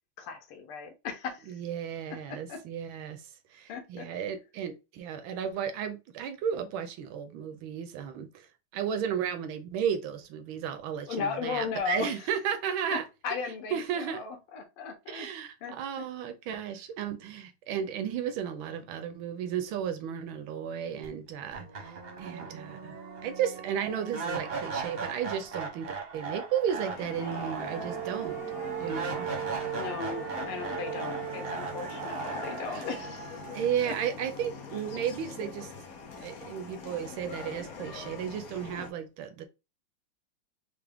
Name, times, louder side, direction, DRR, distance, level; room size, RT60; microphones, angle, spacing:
voice 1, 0.2-1.6 2.1-2.6 3.7-4.1 11.1-12.2 12.9-13.0 13.2-15.3 15.6-16.1 29.7-33.4 33.8-34.0, left 5 dB, 90° left, 1.7 m, -36 dB
voice 2, 1.5-13.0 13.7-14.2 15.1-23.0 23.2-28.4 28.8-29.3 32.7-32.9 33.5-35.7 36.2-39.5, right 8 dB, 80° right, 1.3 m, -34 dB
sound 1, 21.0-21.1 21.5-34.6, right 6 dB, 45° right, 0.7 m, -37 dB
sound 2, 26.9-38.9, left 5 dB, 60° left, 1.0 m, -43 dB
4.6 x 2.1 x 3.4 m
omnidirectional pair, 2.3 m